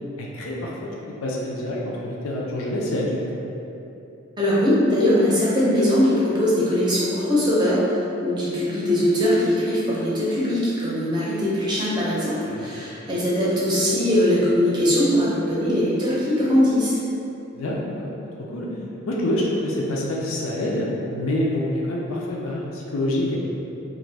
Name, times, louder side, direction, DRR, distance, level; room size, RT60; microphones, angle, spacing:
voice 1, 0.2-3.2 12.4-12.7 17.6-18.7 19.1-23.4, left 1 dB, 90° left, -3 dB, 0.5 m, -27 dB
voice 2, 4.4-17.0, left 1 dB, 20° right, -8 dB, 0.6 m, -21 dB
2.5 x 2.5 x 3.2 m, 2.9 s
head